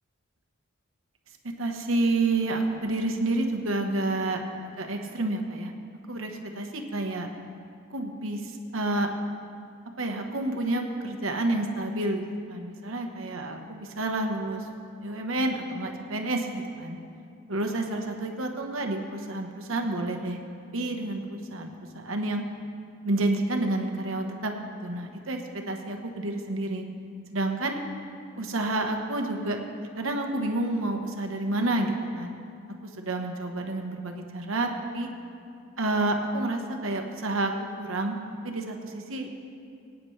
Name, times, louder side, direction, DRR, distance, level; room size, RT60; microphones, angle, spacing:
voice 1, 1.6-4.4 4.8-5.7 6.1-7.3 7.9-9.1 10.0-14.7 15.0-17.0 17.5-20.4 20.7-22.4 23.0-24.5 24.8-25.4 25.7-26.8 27.3-27.8 28.4-29.6 30.0-32.4 32.8-35.1 35.8-37.5 37.8-38.2 38.4-39.3, right 2 dB, 75° right, 3 dB, 1.2 m, -29 dB
23.0 x 9.4 x 3.3 m, 2.5 s
head